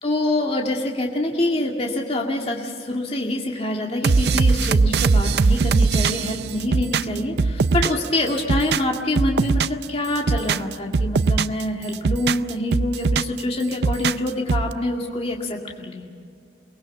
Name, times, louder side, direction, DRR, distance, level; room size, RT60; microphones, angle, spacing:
voice 1, 0.0-16.1, left 1 dB, 35° left, 0 dB, 2.2 m, -25 dB
sound 1, 4.0-8.1 8.4-9.8 10.2-11.6 11.9-13.4 13.7-14.7, right 4 dB, 65° right, 0.5 m, -20 dB
23.5 x 19.5 x 7.3 m, 2.3 s
head